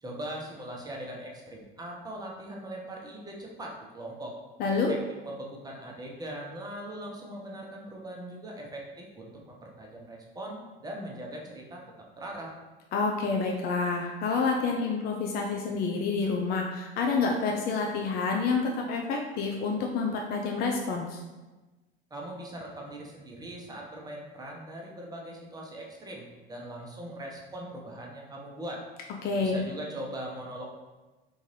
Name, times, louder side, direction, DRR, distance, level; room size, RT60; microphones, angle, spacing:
voice 1, 0.0-4.3 4.9-11.9 12.2-12.5 22.1-28.8 29.4-30.7, right 1 dB, 15° right, -1 dB, 0.7 m, -40 dB
voice 2, 4.6-4.9 12.9-21.2 29.2-29.7, left 4 dB, 35° left, 1 dB, 0.4 m, -28 dB
3.7 x 2.5 x 3.1 m, 1.2 s
hypercardioid pair, 75°, 29 cm